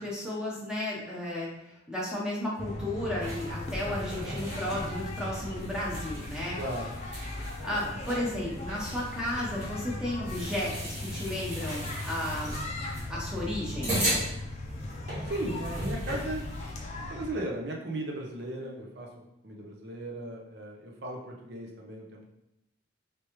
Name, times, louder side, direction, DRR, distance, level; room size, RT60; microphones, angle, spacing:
voice 1, 0.0-1.5 1.9-6.6 7.3-12.6 13.1-13.9, left 1 dB, 5° right, -6 dB, 0.8 m, -33 dB
sound 1, 2.6-17.3, left 2 dB, 35° left, 0.5 m, -38 dB
sound 2, 3.2-16.7, right 1 dB, 40° right, 1.3 m, -38 dB
voice 2, 6.6-6.9 15.2-22.3, right 1 dB, 55° right, 0 dB, 0.7 m, -37 dB
3.3 x 3.1 x 3.0 m, 0.87 s
head